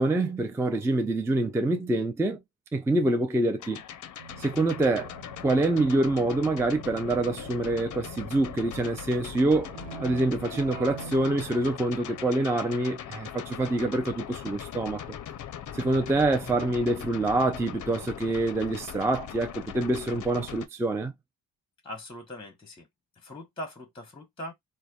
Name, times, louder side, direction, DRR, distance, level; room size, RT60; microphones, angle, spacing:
voice 1, 0.0-2.4 2.7-3.8 4.4-5.1 5.4-9.7 10.0-15.0 15.7-21.1, right 2 dB, 5° right, 0.4 m, -26 dB
sound 1, 3.6-20.7, left 9 dB, 45° left, 0.5 m, -40 dB
Keyboard (musical), 4.2-12.6, right 5 dB, 80° right, 0.7 m, -46 dB
voice 2, 21.8-22.9 23.1-24.5, equal, 10° left, 0.8 m, -41 dB
3.2 x 2.2 x 2.3 m
hypercardioid pair, 45°, 45 cm